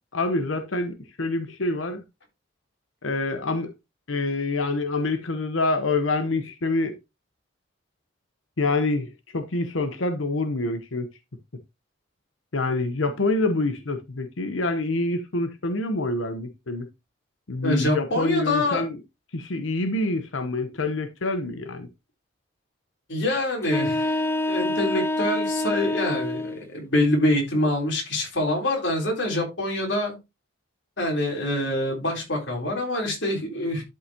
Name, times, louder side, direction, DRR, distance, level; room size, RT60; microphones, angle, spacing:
voice 1, 0.1-2.0 3.0-3.7 4.1-6.9 8.6-11.1 12.5-16.9 17.5-19.0 19.3-21.9, left 2 dB, 90° left, 1.0 m, -26 dB
voice 2, 17.6-18.8 23.1-24.2 24.5-30.2 31.0-33.8, left 1 dB, 65° left, 3.7 m, -25 dB
sound 1, 23.6-26.6, left 2 dB, 10° left, 0.5 m, -26 dB
11.5 x 5.5 x 2.9 m
head